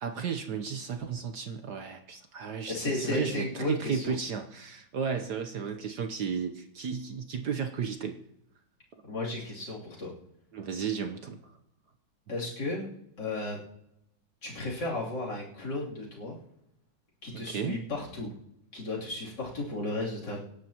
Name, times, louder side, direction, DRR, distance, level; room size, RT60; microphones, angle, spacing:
voice 1, 0.0-8.2 10.5-11.4 17.3-17.8, right 6 dB, 60° right, 6 dB, 1.3 m, -34 dB
voice 2, 2.7-4.1 9.0-10.1 12.3-12.9 13.2-13.6 14.4-16.3 17.2-18.3 18.7-20.4, left 2 dB, 55° left, -5 dB, 3.8 m, -34 dB
25.0 x 11.5 x 3.0 m, 0.82 s
omnidirectional pair, 2.2 m